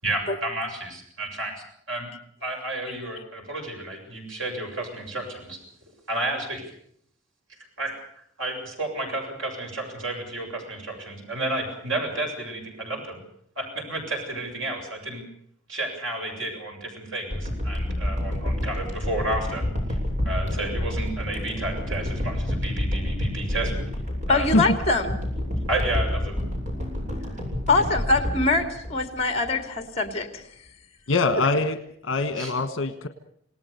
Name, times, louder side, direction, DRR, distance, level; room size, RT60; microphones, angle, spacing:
voice 1, 0.0-1.5 1.9-2.1 2.4-5.6 6.1-6.6 7.8-13.2 13.6-15.2 15.7-20.0 20.2-23.7 24.3-24.6 25.7-26.4 32.4-32.5, right 2 dB, 80° right, 2 dB, 7.4 m, -31 dB
sound 1, 17.3-29.5 30.1-30.2, left 1 dB, 40° right, 7.8 m, -29 dB
voice 2, 24.3-25.2 27.7-30.4, left 3 dB, 35° left, 7 dB, 2.8 m, -23 dB
voice 3, 31.1-31.8 32.0-33.1, left 3 dB, 70° left, 9 dB, 1.4 m, -23 dB
27.5 x 18.5 x 6.9 m, 0.68 s
head